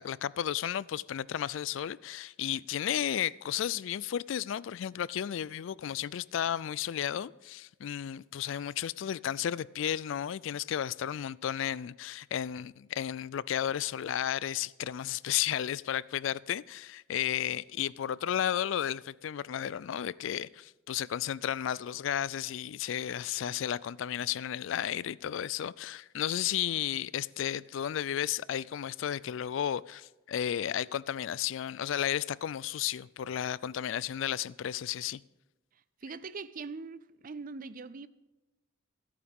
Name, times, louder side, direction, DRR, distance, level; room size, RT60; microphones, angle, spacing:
voice 1, 0.0-35.2, left 10 dB, 65° left, 0.3 m, -33 dB
voice 2, 36.0-38.1, right 4 dB, 40° right, 0.5 m, -42 dB
25.5 x 8.6 x 3.6 m
head